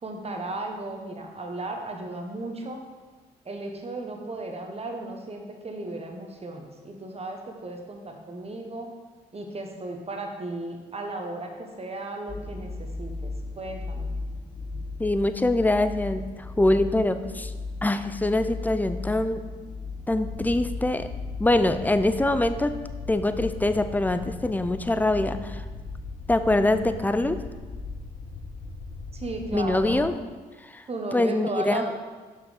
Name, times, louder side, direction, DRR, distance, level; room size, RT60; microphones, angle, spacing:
voice 1, 0.0-2.8 3.4-8.9 9.3-14.1 29.1-30.2 30.9-31.9, right 2 dB, 35° right, 3 dB, 1.3 m, -35 dB
sound 1, 12.3-29.0, left 3 dB, 25° left, 0.9 m, -37 dB
voice 2, 15.0-17.5 17.8-19.4 20.1-21.1 21.4-22.8 23.1-25.6 26.3-27.4 29.5-30.2 30.7-30.8 31.1-31.9, left 1 dB, 10° left, 10 dB, 0.5 m, -24 dB
sound 2, 20.2-30.1, left 3 dB, 80° left, 0.9 m, -40 dB
5.8 x 4.7 x 5.2 m, 1.3 s
supercardioid pair, 55°, 18 cm